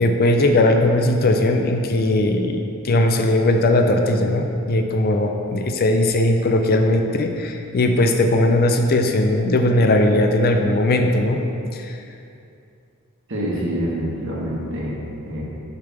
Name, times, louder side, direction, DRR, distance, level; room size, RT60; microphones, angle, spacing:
voice 1, 0.0-11.4 11.7-12.0, left 1 dB, 45° left, 4 dB, 0.5 m, -18 dB
voice 2, 13.3-15.4, equal, 60° right, -4 dB, 1.3 m, -26 dB
6.7 x 3.4 x 5.9 m, 2.6 s
head